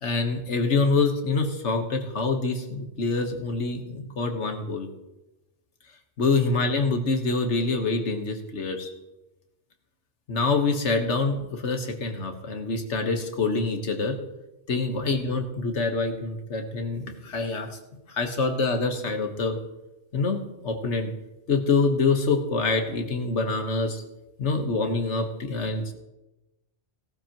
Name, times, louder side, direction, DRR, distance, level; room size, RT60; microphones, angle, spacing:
voice 1, 0.0-4.9 6.2-8.9 10.3-14.2 14.7-17.7 18.1-19.6 20.1-21.1 21.5-24.0 24.4-25.9, left 3 dB, 85° left, 5 dB, 1.7 m, -26 dB
17.5 x 12.5 x 3.0 m, 1.0 s
omnidirectional pair, 1.2 m